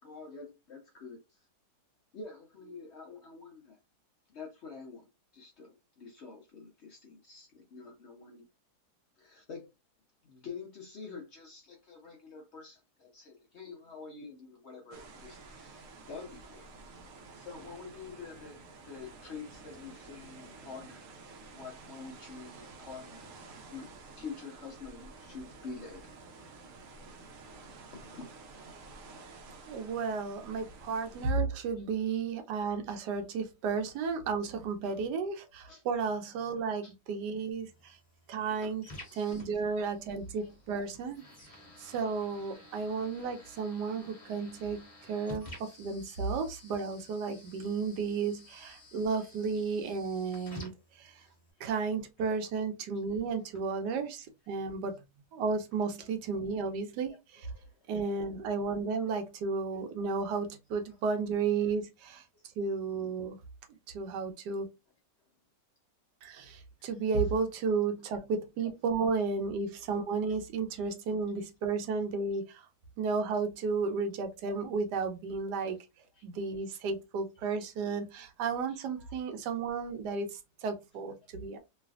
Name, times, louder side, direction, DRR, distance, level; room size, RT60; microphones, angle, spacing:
voice 1, 0.0-1.4 2.1-3.8 4.3-5.1 5.3-8.5 9.2-9.7 10.2-16.7 17.3-18.6 18.9-21.0 21.5-23.3 23.7-23.9 24.2-26.1 27.9-28.3 30.5-30.6 31.6-31.9 34.8-35.1 35.7-35.8 36.1-36.2 36.6-36.9 37.8-37.9 38.4-38.8 39.1-39.8 40.4-40.6 42.0-42.5 49.0-49.3 51.2-51.7 52.3-52.4 53.5-53.6 54.5-54.7 55.4-55.5 57.1-58.0 59.7-59.8 60.9-61.0 61.6-61.8 62.3-62.4 66.8-67.3 68.1-68.7 69.8-69.9 70.3-70.4 70.8-70.9 73.1-73.2 75.7-75.8 76.1-76.3 77.8-77.9 78.7-79.1, left 4 dB, 60° left, 0.7 m, -48 dB
sound 1, 14.9-31.3, right 3 dB, 65° right, 0.8 m, -51 dB
voice 2, 29.7-38.0 38.3-38.9 39.2-41.2 41.8-51.2 51.6-55.0 55.3-57.5 57.9-62.2 62.6-63.4 63.9-64.7 66.2-72.7 73.0-75.8 76.2-81.6, right 4 dB, 85° right, 1.2 m, -33 dB
sound 2, 37.5-51.5, left 1 dB, 30° left, 1.2 m, -52 dB
3.2 x 2.4 x 2.3 m
omnidirectional pair, 1.8 m